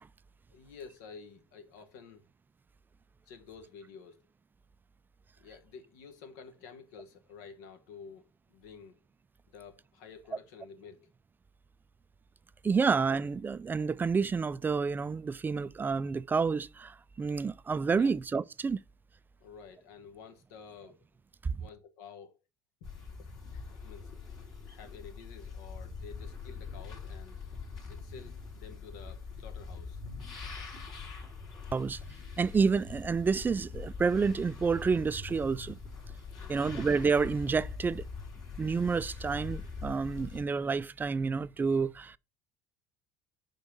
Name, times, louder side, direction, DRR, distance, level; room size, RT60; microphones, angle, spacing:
voice 1, 0.5-2.2 3.3-4.2 5.4-9.0 9.5-11.1 18.0-18.2 19.4-21.0 21.6-22.4 22.8-23.0 23.5-24.2 24.7-27.4 27.9-30.0 36.4-36.7, left 6 dB, 75° left, 1.0 m, -51 dB
voice 2, 12.6-18.8 31.7-32.0 32.4-35.8 36.5-38.0 38.6-42.2, right 5 dB, 20° right, 0.3 m, -29 dB
sound 1, 22.8-40.4, left 4 dB, 45° left, 3.2 m, -43 dB
5.3 x 3.5 x 5.3 m
hypercardioid pair, 70°, 10 cm